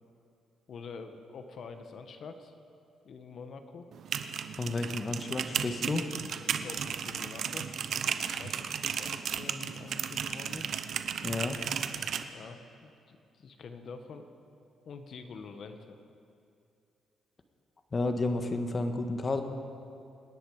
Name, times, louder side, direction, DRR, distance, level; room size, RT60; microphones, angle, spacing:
voice 1, 0.7-2.5 3.0-3.9 6.4-10.8 12.3-14.3 14.8-16.0, left 4 dB, 60° left, 7 dB, 1.5 m, -46 dB
sound 1, 3.9-12.2, right 7 dB, 65° right, 0.9 m, -34 dB
voice 2, 4.6-6.1 11.2-11.6 17.9-19.4, left 2 dB, 35° left, 6 dB, 1.6 m, -31 dB
26.5 x 10.5 x 5.1 m, 2.5 s
cardioid pair, 90°, 0 cm